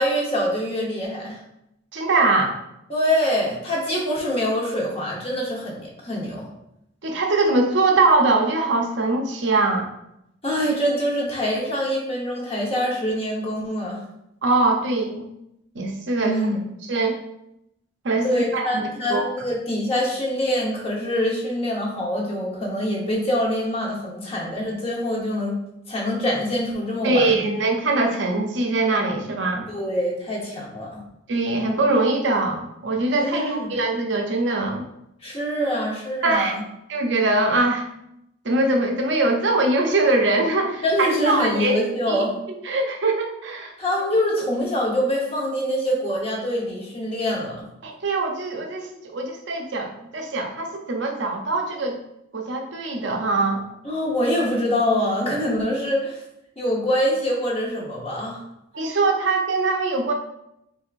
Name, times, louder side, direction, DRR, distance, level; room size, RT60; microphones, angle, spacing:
voice 1, 0.0-1.4 2.9-6.4 10.4-14.0 16.2-16.6 18.2-25.6 25.9-27.5 29.7-31.0 33.2-33.7 35.2-36.6 40.8-42.4 43.8-47.7 53.8-56.2 56.6-58.4, equal, 30° left, -3 dB, 1.0 m, -24 dB
voice 2, 1.9-2.6 7.0-9.9 14.4-15.2 15.7-16.4 16.9-17.2 18.0-19.2 27.0-29.7 31.3-34.8 36.2-36.5 36.9-37.8 38.4-41.8 42.1-42.2 42.6-43.7 47.8-52.0 52.3-53.6 58.7-60.1, right 2 dB, 60° right, 2 dB, 0.6 m, -22 dB
4.5 x 3.5 x 2.5 m, 0.81 s
head